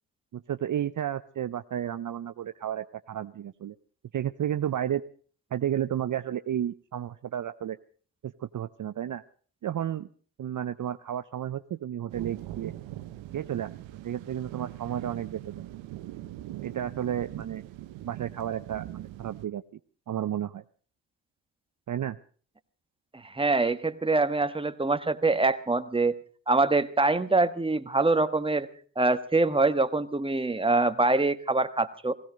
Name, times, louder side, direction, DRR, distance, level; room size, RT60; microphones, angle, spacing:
voice 1, 0.3-3.7 4.1-5.0 5.5-7.8 8.2-9.2 9.6-10.1 10.4-12.7 13.3-13.7 14.0-15.7 16.6-17.6 18.0-19.6 20.1-20.6 21.9-22.2, right 10 dB, 45° right, 11 dB, 0.7 m, -32 dB
sound 1, 12.1-19.5, right 14 dB, 85° right, 1.0 m, -41 dB
voice 2, 23.3-26.1 26.5-28.7 29.0-32.1, right 3 dB, 10° right, 10 dB, 1.3 m, -24 dB
17.0 x 16.5 x 5.2 m, 0.43 s
supercardioid pair, 60°, 45 cm